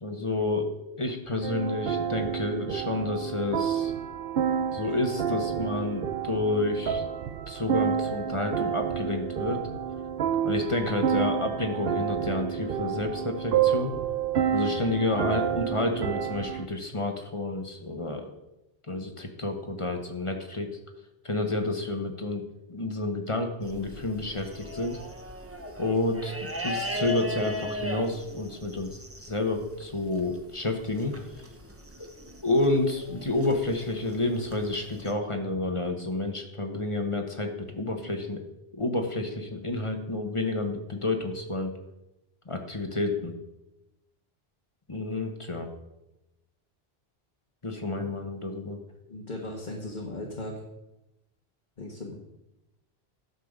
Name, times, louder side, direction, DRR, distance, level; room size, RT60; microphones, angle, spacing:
voice 1, 0.0-0.7 1.0-3.9 4.7-7.0 7.5-9.6 10.4-13.9 14.5-18.3 18.9-20.7 21.2-22.4 22.7-25.0 25.8-26.3 26.6-31.1 32.4-38.4 38.7-41.7 42.5-43.3 44.9-45.7 47.6-48.8, left 2 dB, 30° left, 4 dB, 1.2 m, -29 dB
sound 1, 1.4-16.7, right 8 dB, 65° right, 0.8 m, -29 dB
sound 2, 23.6-35.1, left 1 dB, 15° right, 1.0 m, -38 dB
voice 2, 49.1-50.6 51.8-52.1, left 1 dB, 50° left, -1 dB, 1.6 m, -37 dB
12.0 x 5.6 x 6.6 m, 0.94 s
omnidirectional pair, 1.1 m